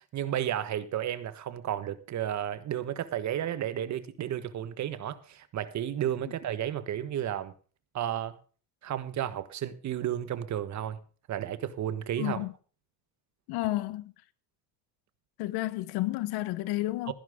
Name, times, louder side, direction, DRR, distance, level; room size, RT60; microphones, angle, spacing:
voice 1, 0.0-7.5 7.9-8.4 8.8-11.0 11.3-12.5 17.1-17.2, right 10 dB, 45° right, 1.4 m, -32 dB
voice 2, 12.2-12.5 13.5-14.1 15.4-17.1, left 17 dB, 75° left, 1.2 m, -31 dB
15.5 x 10.5 x 3.7 m
cardioid pair, 110°, 38 cm